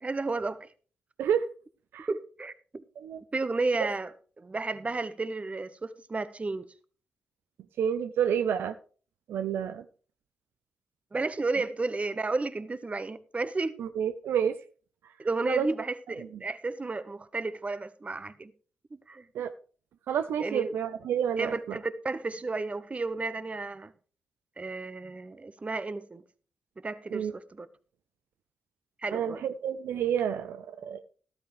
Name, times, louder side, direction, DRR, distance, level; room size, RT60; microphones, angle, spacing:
voice 1, 0.0-0.7 2.1-2.8 3.3-6.7 11.1-13.8 15.2-18.5 18.9-19.3 20.4-20.7 21.4-23.9 24.6-26.2 26.8-27.7 29.0-29.4, right 3 dB, 35° right, 1.2 m, -32 dB
voice 2, 7.8-8.7 9.3-9.9 13.8-14.6 15.0-15.1 15.5-15.7 19.3-19.5 20.1-21.8 27.1-27.3 29.1-31.0, right 8 dB, 75° right, 0.6 m, -29 dB
13.5 x 12.5 x 3.2 m
supercardioid pair, 40°, 4 cm